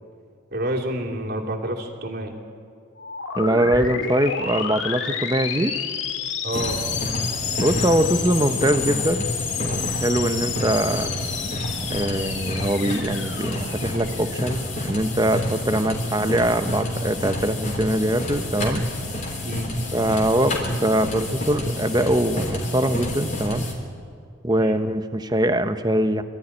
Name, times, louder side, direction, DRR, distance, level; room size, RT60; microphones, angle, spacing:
voice 1, 0.5-2.3 6.4-6.8 19.4-19.7 24.6-24.8, right 1 dB, 50° right, 0 dB, 2.7 m, -28 dB
sound 1, 3.0-14.7, left 7 dB, 60° left, 1.8 m, -30 dB
voice 2, 3.4-5.8 7.6-9.3 9.6-11.1 11.9-18.9 19.9-23.7 24.4-26.2, right 1 dB, 20° right, 9 dB, 0.9 m, -22 dB
sound 2, 6.5-23.7, left 1 dB, 40° left, 3.5 m, -29 dB
24.5 x 13.5 x 9.9 m, 2.3 s
head